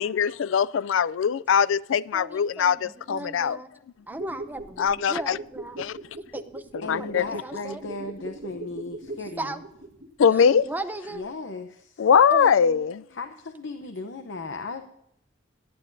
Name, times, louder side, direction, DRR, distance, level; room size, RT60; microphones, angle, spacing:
voice 1, 0.0-3.6 4.8-5.4 5.8-6.0 6.9-7.4 10.2-10.6 12.0-13.0, left 7 dB, 85° left, 0.4 m, -22 dB
voice 2, 2.1-3.7 4.1-5.8 6.3-6.6 7.4-7.8 9.4-9.6 10.3-11.2 12.3-12.9, right 1 dB, 10° right, 0.7 m, -36 dB
sound 1, 4.0-10.9 11.2-11.3, right 2 dB, 50° right, 1.4 m, -40 dB
voice 3, 6.8-9.6 11.1-12.1 13.1-14.8, left 3 dB, 70° left, 0.8 m, -36 dB
18.0 x 9.5 x 2.6 m
head